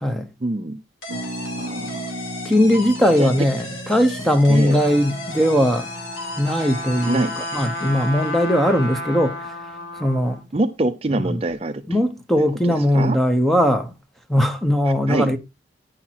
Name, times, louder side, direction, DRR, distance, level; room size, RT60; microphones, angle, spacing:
voice 1, 0.4-0.8 1.6-2.1 3.2-3.3 4.5-4.8 7.1-7.4 10.5-11.8 12.4-13.2 15.1-15.3, right 2 dB, 30° right, 0.5 m, -24 dB
sound 1, 1.0-8.4, left 2 dB, 90° left, 2.9 m, -35 dB
Harp, 1.1-10.7 11.0-11.1 11.2-11.6, right 1 dB, 65° right, 1.3 m, -38 dB
voice 2, 2.4-5.9 6.4-9.4 10.0-10.4 11.1-11.4 11.9-13.9 14.3-15.4, equal, ahead, 0.8 m, -19 dB
Trumpet, 4.4-10.4, left 1 dB, 60° left, 3.1 m, -32 dB
10.0 x 5.8 x 4.5 m
head